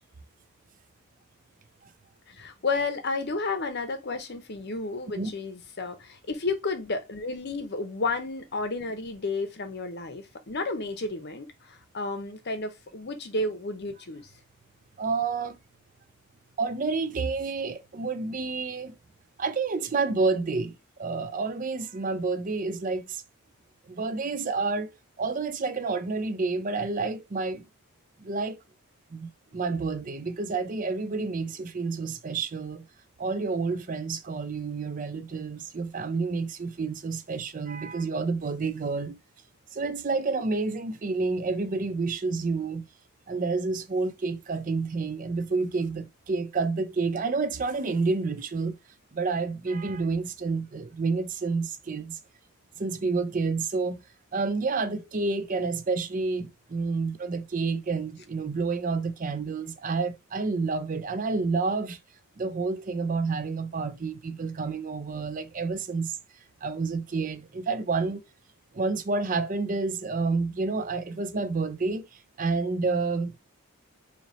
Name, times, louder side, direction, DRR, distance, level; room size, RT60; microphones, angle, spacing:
voice 1, 2.3-14.3, left 3 dB, 50° left, 0.7 m, -32 dB
voice 2, 15.0-15.6 16.6-19.0 19.4-23.2 23.9-24.9 25.2-27.7 28.2-28.6 29.1-32.8 33.2-39.2 39.7-42.8 43.3-48.8 49.1-52.2 52.8-54.0 54.3-62.0 62.4-66.1 66.6-68.2 68.7-73.3, right 4 dB, 35° right, 0.5 m, -29 dB
4.2 x 2.9 x 3.0 m
head